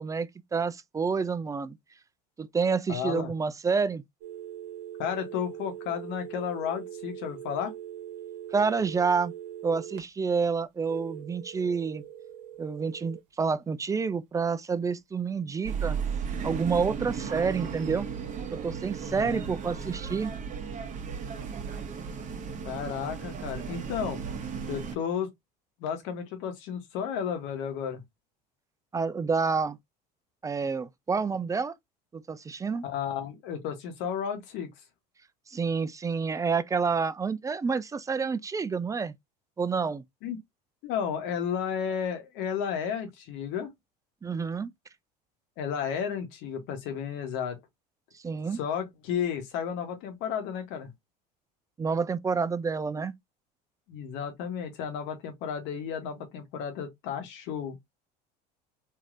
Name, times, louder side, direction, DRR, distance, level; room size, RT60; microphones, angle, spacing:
voice 1, 0.0-1.8 2.4-4.0 8.5-9.3 9.6-12.0 12.6-16.0 16.4-18.1 18.5-20.3 28.9-29.8 30.4-31.7 32.1-32.8 35.5-39.1 39.6-40.0 44.2-44.7 48.1-48.6 51.8-53.1, right 5 dB, 15° right, 0.3 m, -28 dB
voice 2, 2.9-3.3 5.0-7.7 19.1-19.5 22.6-24.2 24.7-25.3 25.8-28.0 32.8-34.7 40.2-40.4 40.8-43.7 45.6-47.6 48.5-50.9 53.9-57.8, left 8 dB, 65° left, 1.1 m, -33 dB
sound 1, 4.2-10.0 10.8-13.2 17.2-19.2 19.6-20.5 21.4-21.8, right 11 dB, 65° right, 1.1 m, -43 dB
sound 2, 15.6-25.0, right 6 dB, 35° right, 1.0 m, -35 dB
3.2 x 2.7 x 2.4 m
hypercardioid pair, 80°, 21 cm